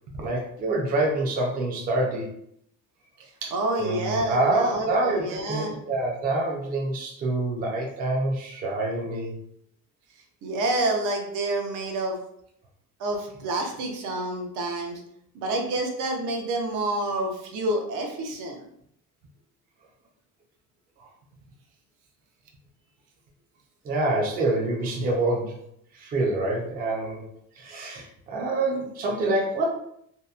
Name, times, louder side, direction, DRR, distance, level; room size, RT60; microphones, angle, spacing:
voice 1, 0.2-2.3 3.4-3.5 3.8-9.3 23.8-25.6 25.9-27.2 27.6-29.7, right 2 dB, 30° right, -1 dB, 0.4 m, -26 dB
voice 2, 3.5-5.8 10.4-12.2 13.0-15.0 15.3-18.6, right 1 dB, 70° right, 2 dB, 0.6 m, -28 dB
2.7 x 2.1 x 2.3 m, 0.71 s
cardioid pair, 165°, 32 cm